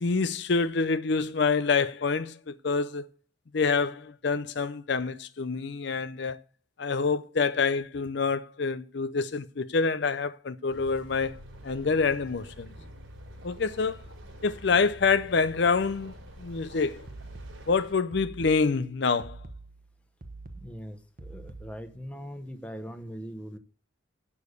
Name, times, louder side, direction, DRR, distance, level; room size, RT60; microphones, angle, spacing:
voice 1, 0.0-3.0 3.5-6.4 6.8-12.7 13.4-14.0 14.4-17.0 17.7-19.4, left 4 dB, 60° left, 0.5 m, -27 dB
sound 1, 10.7-17.9, equal, 85° right, 3.8 m, -47 dB
sound 2, 17.1-22.1, right 2 dB, 45° right, 1.1 m, -46 dB
voice 2, 20.5-23.6, equal, 5° left, 1.1 m, -41 dB
8.3 x 7.0 x 8.1 m
head